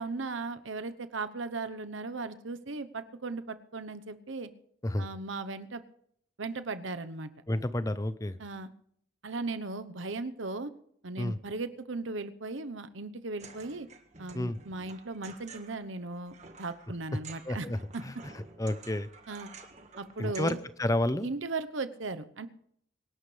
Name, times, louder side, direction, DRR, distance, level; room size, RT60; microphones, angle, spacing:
voice 1, 0.0-4.5 5.0-5.8 6.4-7.3 8.4-8.7 9.2-10.7 11.0-13.9 14.2-17.7 17.9-18.0 19.3-19.5 20.0-20.6 21.2-22.5, right 3 dB, 80° right, 11 dB, 1.0 m, -37 dB
voice 2, 7.5-8.4 11.2-11.4 14.3-14.6 17.5-19.1 20.2-21.3, left 1 dB, 15° left, 14 dB, 0.6 m, -31 dB
sound 1, 13.4-20.5, right 4 dB, 35° right, 1.5 m, -51 dB
25.5 x 11.5 x 3.3 m, 0.66 s
head